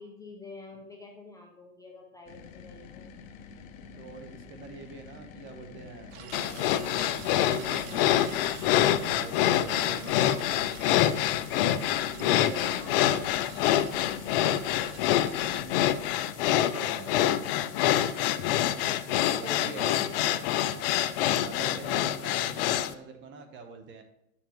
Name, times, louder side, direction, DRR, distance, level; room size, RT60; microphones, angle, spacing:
voice 1, 0.0-3.1 10.0-10.5 12.6-13.6 16.7-17.4 19.2-21.0 21.7-22.0, left 2 dB, 10° left, -1 dB, 0.8 m, -47 dB
sound 1, 2.3-16.2, left 5 dB, 60° left, 0.9 m, -48 dB
voice 2, 4.0-11.1 12.2-12.6 15.3-15.8 16.4-17.4 19.4-20.1 21.4-24.0, right 4 dB, 25° right, 7 dB, 1.0 m, -45 dB
sound 2, 6.1-15.6, right 7 dB, 50° right, 0.9 m, -48 dB
sound 3, 6.3-22.9, left 12 dB, 40° left, 0.5 m, -26 dB
10.5 x 7.2 x 3.0 m, 0.80 s
hypercardioid pair, 130°, 44 cm